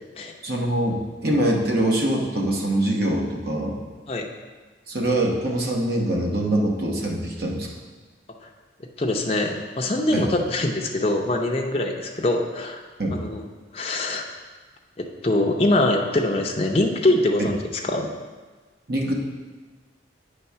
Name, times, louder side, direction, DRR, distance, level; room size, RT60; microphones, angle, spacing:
voice 1, 0.4-3.8 4.9-7.7 10.1-10.3 13.0-13.2 17.4-17.5 18.9-19.1, right 1 dB, 55° right, 0 dB, 1.0 m, -23 dB
voice 2, 8.8-12.8 13.1-13.4 13.7-14.3 15.0-18.1, left 1 dB, 30° left, 1 dB, 0.5 m, -23 dB
7.9 x 3.5 x 5.6 m, 1.3 s
head